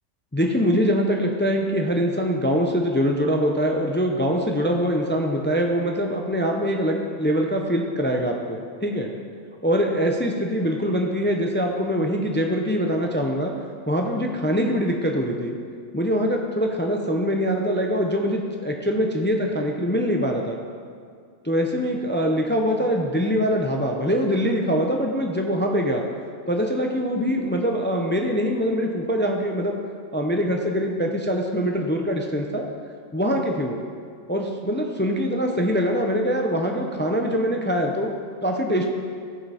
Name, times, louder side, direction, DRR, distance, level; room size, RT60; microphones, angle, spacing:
voice 1, 0.3-9.1 9.6-13.5 13.9-15.5 15.9-20.6 21.4-26.1 26.5-29.8 30.1-32.7 33.1-33.8 34.3-38.1 38.4-38.9, equal, 15° left, 2 dB, 0.5 m, -23 dB
15.0 x 5.7 x 4.2 m, 2.2 s
omnidirectional pair, 1.2 m